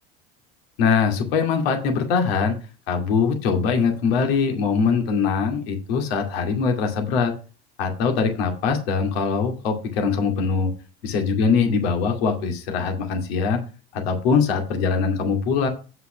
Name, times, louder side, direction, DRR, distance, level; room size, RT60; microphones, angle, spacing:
voice 1, 0.8-2.6 2.9-7.3 7.8-10.7 11.0-13.6 13.9-15.7, left 5 dB, 80° left, 4 dB, 2.3 m, -22 dB
8.2 x 5.8 x 5.9 m, 0.34 s
supercardioid pair, 95°, 30 cm